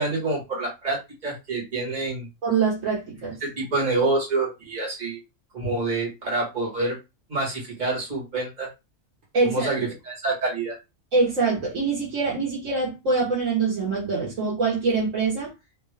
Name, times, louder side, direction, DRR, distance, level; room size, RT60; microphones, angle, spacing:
voice 1, 0.0-2.3 3.4-5.2 5.5-7.0 7.3-8.7 9.4-10.8, right 3 dB, 35° right, 1.7 m, -27 dB
voice 2, 2.4-3.3 9.3-9.7 11.1-15.5, right 4 dB, 70° right, 1.7 m, -24 dB
3.6 x 2.6 x 3.3 m
omnidirectional pair, 1.4 m